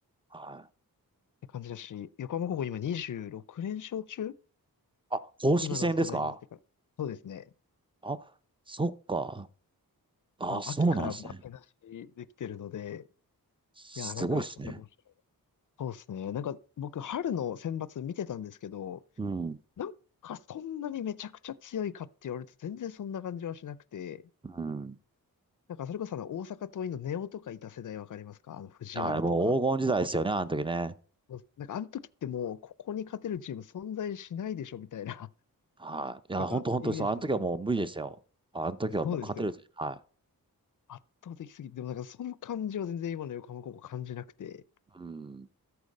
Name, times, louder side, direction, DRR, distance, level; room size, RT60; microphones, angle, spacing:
voice 1, 0.3-0.7 5.1-6.3 8.0-8.2 8.7-9.5 10.4-11.2 13.8-14.8 19.2-19.6 24.4-25.0 28.9-30.9 35.8-38.2 38.5-39.5 39.8-40.0 45.0-45.5, right 2 dB, 15° right, 0.7 m, -30 dB
voice 2, 1.5-4.3 5.6-6.3 7.0-7.5 10.5-13.1 14.0-14.8 15.8-19.0 19.8-19.9 20.2-24.2 25.8-29.5 31.3-35.3 36.4-37.4 39.0-39.5 40.9-44.6, left 9 dB, 55° left, 0.6 m, -37 dB
13.5 x 4.7 x 5.3 m
wide cardioid pair, 75°, 37 cm